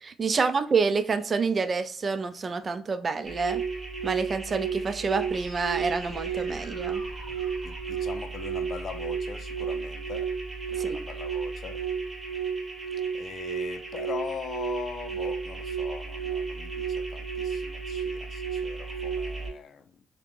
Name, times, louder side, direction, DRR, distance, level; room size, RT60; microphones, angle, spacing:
voice 1, 0.0-3.6 4.0-7.0 10.7-11.0, right 4 dB, 40° right, 0.4 m, -28 dB
sound 1, 3.2-19.5, right 6 dB, 20° right, 0.9 m, -33 dB
sound 2, 5.3-9.3, equal, 70° right, 1.5 m, -48 dB
voice 2, 7.6-10.3 10.7-11.8 13.1-20.0, left 7 dB, 55° left, 0.4 m, -41 dB
3.5 x 2.8 x 2.4 m
cardioid pair, 90°, 0 cm